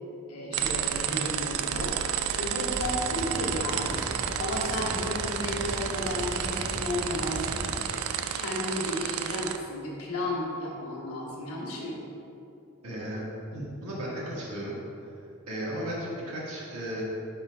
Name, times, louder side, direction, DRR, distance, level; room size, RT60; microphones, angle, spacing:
voice 1, 0.3-1.9 2.4-4.0 4.4-7.5 8.3-12.0, left 1 dB, 70° left, -3 dB, 1.2 m, -33 dB
sound 1, 0.5-9.6, right 8 dB, 70° right, 0.3 m, -31 dB
sound 2, 2.7-7.9, equal, 5° right, 0.5 m, -38 dB
voice 2, 12.8-13.2 13.5-14.8 15.5-17.0, right 1 dB, 90° right, -6 dB, 1.4 m, -35 dB
5.0 x 4.4 x 4.4 m, 2.8 s
head